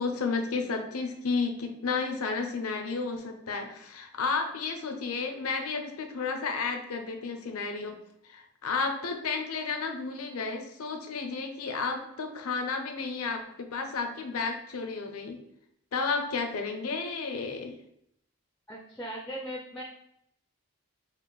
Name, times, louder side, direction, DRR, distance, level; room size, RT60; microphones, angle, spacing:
voice 1, 0.0-8.0 8.3-15.4 15.9-17.8, left 4 dB, 80° left, 5 dB, 0.5 m, -32 dB
voice 2, 18.7-19.8, equal, 5° left, -1 dB, 0.4 m, -38 dB
4.1 x 2.4 x 3.1 m, 0.76 s
head